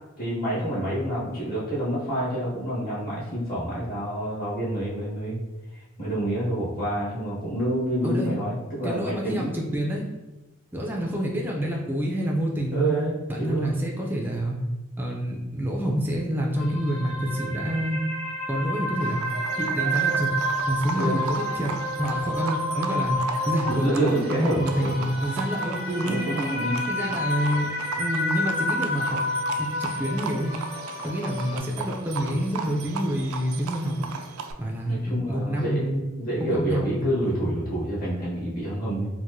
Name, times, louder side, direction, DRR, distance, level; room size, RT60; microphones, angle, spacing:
voice 1, 0.2-5.4 6.0-9.5 12.7-13.1 13.4-13.7 20.9-21.2 23.7-25.0 26.0-26.8 34.9-39.1, right 1 dB, 45° left, -8 dB, 1.4 m, -28 dB
voice 2, 8.0-8.3 8.8-10.1 10.7-13.0 13.3-14.6 15.0-18.0 18.5-19.2 19.6-20.3 20.7-21.7 22.0-26.3 26.9-29.2 29.6-30.6 31.0-34.1 34.6-35.9 36.4-37.4, equal, 10° right, -1 dB, 0.4 m, -27 dB
sound 1, 16.6-31.6, equal, 25° left, 0.7 m, -30 dB
Livestock farm animals working animals, 19.0-34.5, right 5 dB, 85° right, 0.3 m, -37 dB
4.4 x 2.1 x 2.6 m, 1.1 s
head